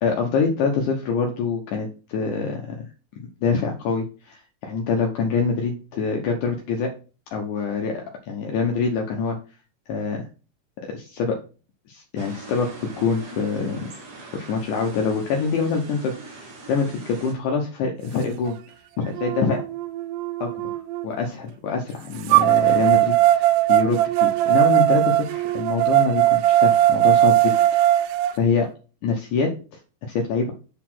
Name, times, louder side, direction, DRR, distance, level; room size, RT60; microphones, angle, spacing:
voice 1, 0.0-2.9 3.2-6.9 7.3-9.4 9.9-10.2 10.9-11.4 11.9-13.9 14.3-18.6 19.0-19.6 20.4-20.5 21.0-28.7 29.0-29.8 30.1-30.5, left 5 dB, 70° left, 2 dB, 2.2 m, -25 dB
sound 1, 12.2-17.3, right 2 dB, 45° right, 1.3 m, -42 dB
sound 2, 18.5-18.6 19.2-21.1 22.3-28.3, right 14 dB, 80° right, 2.0 m, -19 dB
7.2 x 4.1 x 5.9 m, 0.35 s
omnidirectional pair, 3.9 m